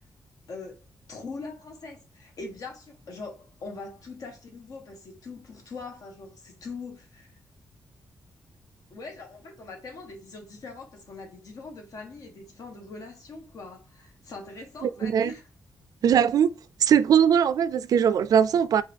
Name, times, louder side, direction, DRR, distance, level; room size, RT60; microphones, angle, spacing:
voice 1, 1.1-7.3 8.9-15.4, left 3 dB, 60° left, 1.3 m, -42 dB
voice 2, 14.8-15.3 16.0-16.5 16.8-18.8, right 8 dB, 65° right, 0.3 m, -20 dB
3.9 x 3.7 x 3.4 m
wide cardioid pair, 180°, 7 cm